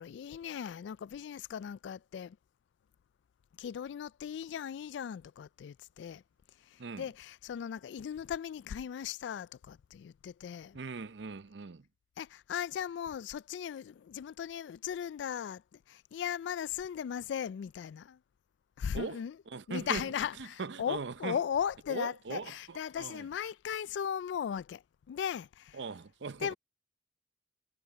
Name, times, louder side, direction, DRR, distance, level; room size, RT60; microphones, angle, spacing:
voice 1, 0.0-2.4 3.6-6.2 6.7-10.8 12.2-18.2 18.8-19.4 19.7-24.8 25.1-25.8 26.4-26.5, left 8 dB, 90° left, 0.3 m, -37 dB
voice 2, 10.7-11.8 18.9-19.2 19.5-20.1 20.4-21.4 21.9-23.3 25.7-26.5, right 4 dB, 80° right, 0.6 m, -40 dB
head